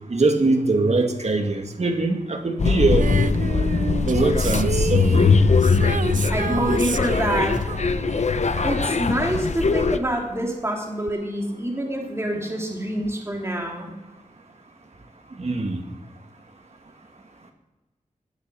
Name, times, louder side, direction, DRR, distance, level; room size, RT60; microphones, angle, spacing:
voice 1, 0.1-3.1 4.1-5.4 15.4-15.8, right 3 dB, 55° right, 4 dB, 2.1 m, -22 dB
sound 1, 2.6-10.0, left 4 dB, 60° left, 0.7 m, -21 dB
Female singing, 3.0-9.9 11.1-11.2, right 6 dB, 85° right, 0.6 m, -31 dB
voice 2, 6.3-7.5 8.6-13.9, right 1 dB, 20° right, 0 dB, 3.1 m, -26 dB
19.5 x 7.3 x 7.0 m, 1.2 s
wide cardioid pair, 85°, 13 cm